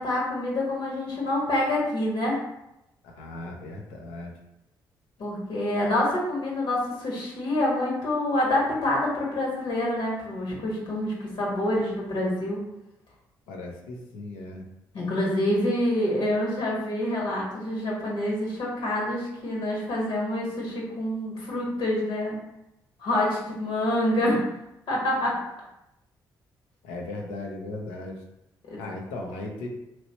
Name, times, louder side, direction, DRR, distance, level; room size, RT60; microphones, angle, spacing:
voice 1, 0.0-2.4 5.2-12.6 14.9-22.4 23.0-24.4 24.9-25.4 28.7-28.8, left 1 dB, 70° left, -4 dB, 1.3 m, -27 dB
voice 2, 3.0-4.3 13.5-14.7 26.8-28.2 28.8-29.7, left 2 dB, 90° left, 1 dB, 0.6 m, -37 dB
3.0 x 3.0 x 2.9 m, 0.88 s
supercardioid pair, 60°, 9 cm